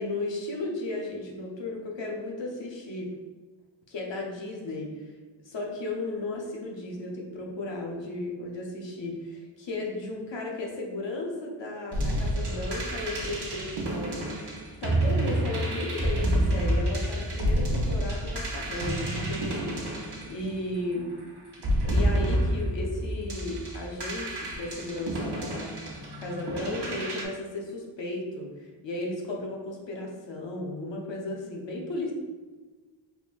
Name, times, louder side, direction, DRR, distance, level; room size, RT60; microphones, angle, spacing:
voice 1, 0.0-3.1 3.9-5.1 5.4-14.4 14.8-21.1 21.8-25.8 26.2-32.1, left 2 dB, 75° left, -1 dB, 0.8 m, -35 dB
sound 1, 11.9-20.9 21.5-27.2, right 1 dB, 65° right, 0.8 m, -29 dB
3.5 x 3.0 x 2.4 m, 1.3 s
wide cardioid pair, 65°, 44 cm